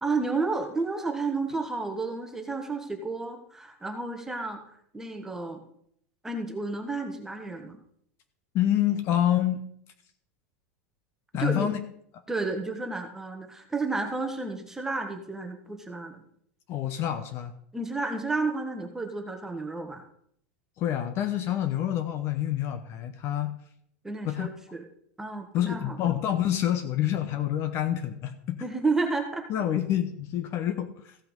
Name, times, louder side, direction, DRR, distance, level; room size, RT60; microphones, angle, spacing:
voice 1, 0.0-4.6 4.9-5.6 6.2-7.8 11.3-11.7 12.3-16.2 17.7-20.0 24.0-24.8 25.2-26.0 28.6-29.5, right 3 dB, 5° right, 4 dB, 1.4 m, -31 dB
voice 2, 8.5-9.6 11.3-11.8 16.7-17.5 20.8-23.6 24.2-24.5 25.5-28.6 29.5-31.2, left 11 dB, 35° left, 9 dB, 0.9 m, -27 dB
15.0 x 5.7 x 5.3 m, 0.67 s
supercardioid pair, 150°, 7 cm